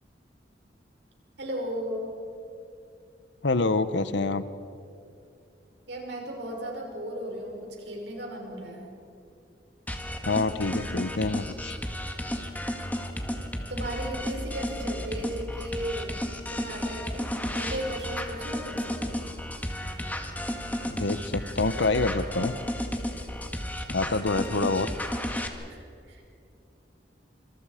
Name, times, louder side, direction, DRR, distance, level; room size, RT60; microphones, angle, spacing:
voice 1, 1.4-2.1 5.9-8.9 13.7-16.2 16.5-19.1 24.5-24.7 25.7-26.2, right 1 dB, 80° right, 0 dB, 5.8 m, -36 dB
voice 2, 3.4-4.4 10.2-11.7 20.9-22.5 23.9-24.9, left 3 dB, 90° left, 13 dB, 0.9 m, -26 dB
sound 1, 9.9-25.5, left 1 dB, 10° left, 1.8 m, -33 dB
27.0 x 26.5 x 5.0 m, 2.6 s
head